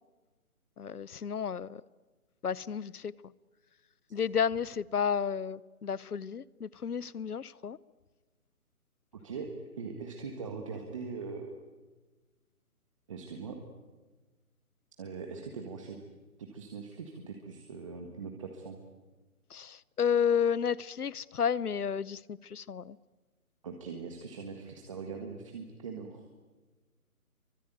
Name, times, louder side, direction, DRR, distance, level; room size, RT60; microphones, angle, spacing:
voice 1, 0.8-1.8 2.4-3.1 4.1-7.8 19.5-23.0, left 7 dB, 85° left, 0.9 m, -31 dB
voice 2, 9.1-11.5 13.1-13.6 15.0-16.0 16.4-18.8 23.6-26.3, right 5 dB, 20° right, 1.7 m, -41 dB
25.5 x 24.0 x 9.3 m
hypercardioid pair, 170°, 44 cm